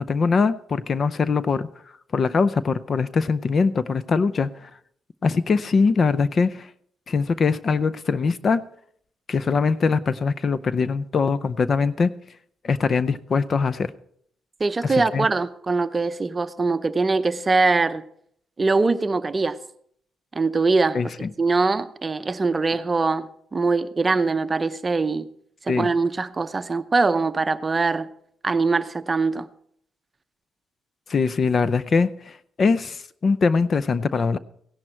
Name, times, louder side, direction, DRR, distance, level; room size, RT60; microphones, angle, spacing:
voice 1, 0.0-1.7 2.1-4.7 5.2-6.7 7.1-8.6 9.3-12.1 12.6-13.9 14.8-15.3 20.9-21.3 25.7-25.9 31.1-34.4, left 4 dB, 45° left, 16 dB, 0.5 m, -22 dB
voice 2, 14.6-18.0 18.6-19.6 20.3-21.0 21.4-25.3 25.6-28.1 28.4-29.5, right 3 dB, 25° right, 12 dB, 0.7 m, -22 dB
16.5 x 11.0 x 4.5 m, 0.67 s
cardioid pair, 90°, 0 cm